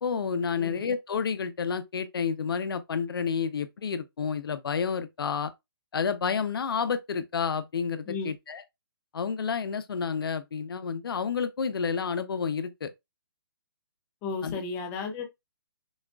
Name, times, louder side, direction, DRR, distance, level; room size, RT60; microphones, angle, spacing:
voice 1, 0.0-5.5 5.9-8.6 9.1-12.9 14.4-14.6, left 6 dB, 70° left, 0.6 m, -30 dB
voice 2, 14.2-15.3, left 4 dB, 15° left, 0.6 m, -34 dB
6.1 x 2.3 x 2.3 m
hypercardioid pair, 165°, 13 cm